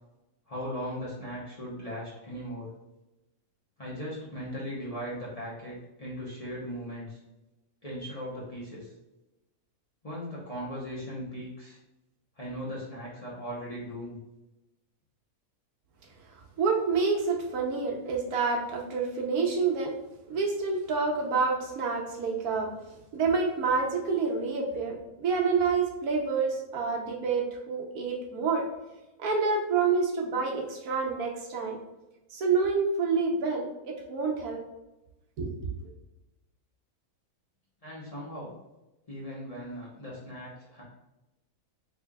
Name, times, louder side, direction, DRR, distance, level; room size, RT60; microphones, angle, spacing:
voice 1, 0.5-2.7 3.8-7.2 7.8-8.9 10.0-11.8 12.4-14.2 37.8-38.6 39.1-40.8, equal, 30° left, -7 dB, 0.7 m, -38 dB
voice 2, 16.3-20.0 20.3-22.7 23.1-28.6 29.2-31.8 32.3-34.6 35.4-35.5, right 4 dB, 80° right, 0 dB, 1.2 m, -28 dB
3.7 x 3.3 x 2.3 m, 0.99 s
omnidirectional pair, 1.6 m